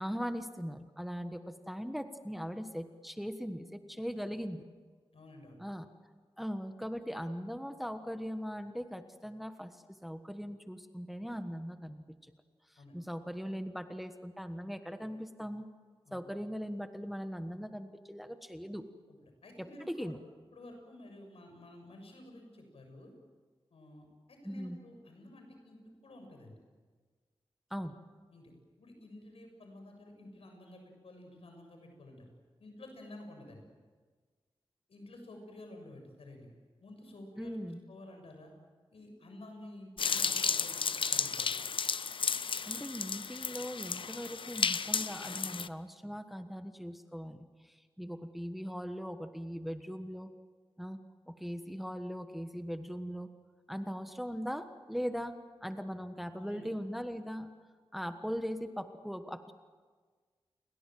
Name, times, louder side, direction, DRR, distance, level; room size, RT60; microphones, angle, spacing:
voice 1, 0.0-4.6 5.6-5.9 6.4-12.3 12.7-15.7 16.1-18.8 19.6-20.2 24.4-24.8 27.7-27.9 37.4-37.8 42.6-50.3 50.8-53.3 53.7-55.3 55.6-57.5 57.9-59.5, equal, ahead, 8 dB, 1.4 m, -40 dB
voice 2, 5.1-5.6 12.8-13.0 16.1-16.2 19.1-20.1 20.5-23.1 23.7-26.6 28.3-28.5 28.8-32.3 32.6-33.6 34.9-36.5 36.8-37.6 37.9-38.5 38.9-41.5 56.3-56.7, left 1 dB, 85° left, 4 dB, 7.2 m, -51 dB
sound 1, 40.0-45.7, left 5 dB, 65° left, 0.7 m, -33 dB
30.0 x 22.5 x 7.7 m, 1.5 s
wide cardioid pair, 120°, 10 cm